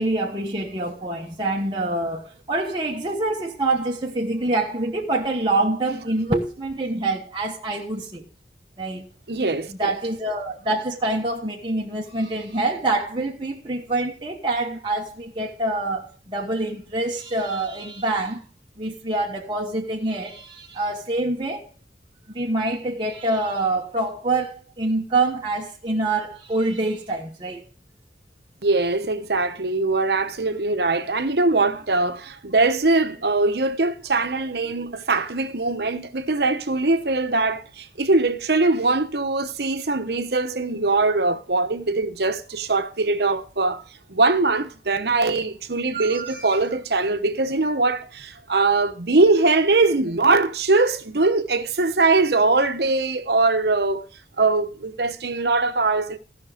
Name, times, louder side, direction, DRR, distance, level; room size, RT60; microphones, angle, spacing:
voice 1, 0.0-8.2 8.8-9.1 9.7-18.4 18.8-21.7 22.3-27.7 45.9-46.6, right 2 dB, 25° right, 1.2 m, -26 dB
voice 2, 9.3-10.0 28.6-43.8 44.1-54.0 54.4-56.2, right 3 dB, 65° right, 1.0 m, -21 dB
16.0 x 6.0 x 4.9 m
head